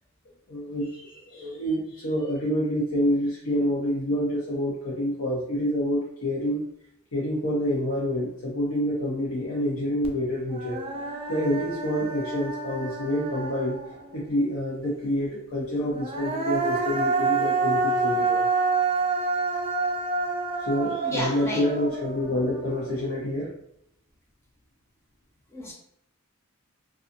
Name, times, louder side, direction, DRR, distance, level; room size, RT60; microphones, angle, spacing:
voice 1, 0.5-6.6 7.1-10.8 11.3-13.8 14.1-18.4 20.6-23.5, left 1 dB, 85° left, -6 dB, 0.7 m, -27 dB
Human voice, 10.0-10.1 10.5-14.2 15.8-23.1, right 4 dB, 30° right, 0.3 m, -28 dB
voice 2, 21.0-21.6 25.5-25.7, left 1 dB, 15° left, -3 dB, 0.6 m, -32 dB
2.5 x 2.4 x 2.6 m, 0.71 s
head